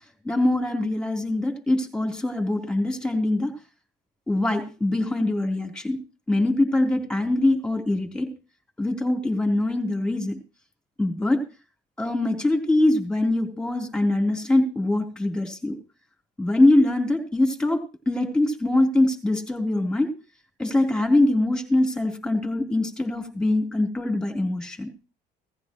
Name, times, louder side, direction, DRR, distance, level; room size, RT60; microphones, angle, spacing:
voice 1, 0.2-3.5 4.3-6.0 6.3-8.3 8.8-10.4 11.0-11.4 12.0-15.8 16.4-20.1 20.6-24.9, left 2 dB, 5° left, 3 dB, 3.5 m, -23 dB
17.5 x 14.5 x 3.1 m, 0.33 s
cardioid pair, 110°, 17 cm